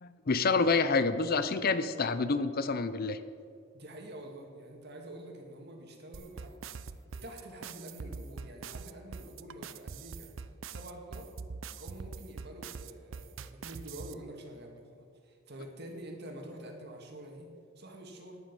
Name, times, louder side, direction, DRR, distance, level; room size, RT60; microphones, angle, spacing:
voice 1, 0.0-3.2, left 4 dB, 50° left, 12 dB, 0.6 m, -28 dB
voice 2, 3.7-10.3 10.7-11.3 11.8-17.5 17.8-18.4, right 1 dB, 55° right, 2 dB, 2.1 m, -47 dB
sound 1, 6.1-14.1, right 5 dB, 75° right, 0.5 m, -43 dB
10.5 x 9.3 x 7.4 m, 2.3 s
head